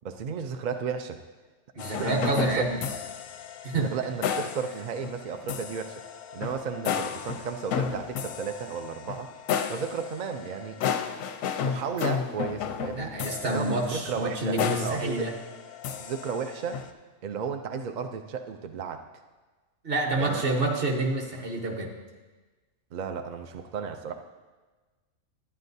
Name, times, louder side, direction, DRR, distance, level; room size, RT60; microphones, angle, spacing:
voice 1, 0.0-1.2 2.0-2.3 3.7-6.0 6.3-9.3 9.7-10.8 11.6-13.1 13.5-15.3 16.0-16.8 17.2-19.0 20.2-20.5 22.9-24.1, right 6 dB, 70° right, 6 dB, 0.4 m, -33 dB
voice 2, 1.7-2.8 3.6-3.9 13.0-15.3 19.8-21.9, right 2 dB, 50° right, 1 dB, 1.2 m, -28 dB
sound 1, 1.8-16.9, left 7 dB, 85° left, 1.0 m, -33 dB
11.5 x 9.7 x 2.7 m, 1.3 s
omnidirectional pair, 1.3 m